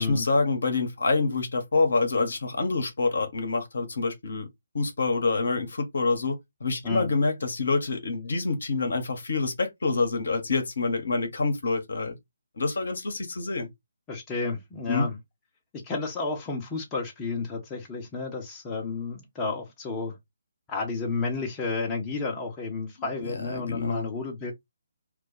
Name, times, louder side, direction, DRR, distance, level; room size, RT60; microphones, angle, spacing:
voice 1, 0.0-4.5 4.7-12.1 12.6-13.7 14.9-15.1 23.0-24.1, left 3 dB, 65° left, 0.9 m, -27 dB
voice 2, 14.1-15.2 15.8-20.1 20.7-24.5, left 4 dB, 15° left, 0.8 m, -31 dB
2.4 x 2.2 x 3.9 m
figure-of-eight pair, 140°, 0 cm